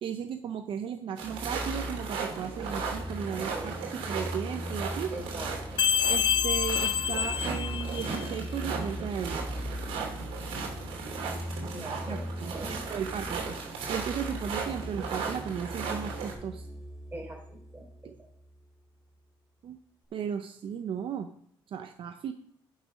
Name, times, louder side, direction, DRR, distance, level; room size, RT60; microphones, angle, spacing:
voice 1, 0.0-5.1 6.1-9.4 12.1-13.6 13.9-16.7 18.0-18.1 19.6-19.8 20.1-21.3 21.7-22.3, right 8 dB, 65° right, 8 dB, 0.7 m, -36 dB
sound 1, 1.2-18.6, equal, 5° right, 1.8 m, -39 dB
sound 2, 1.2-16.3, right 5 dB, 90° right, 3.0 m, -37 dB
voice 2, 3.3-3.7 5.1-5.8 11.7-12.2 12.5-12.8 17.1-17.4 17.7-17.9, right 1 dB, 20° right, 1 dB, 3.8 m, -41 dB
sound 3, 5.8-8.3, left 9 dB, 50° left, 0.6 m, -27 dB
11.5 x 6.3 x 5.2 m, 0.68 s
cardioid pair, 95°, 10 cm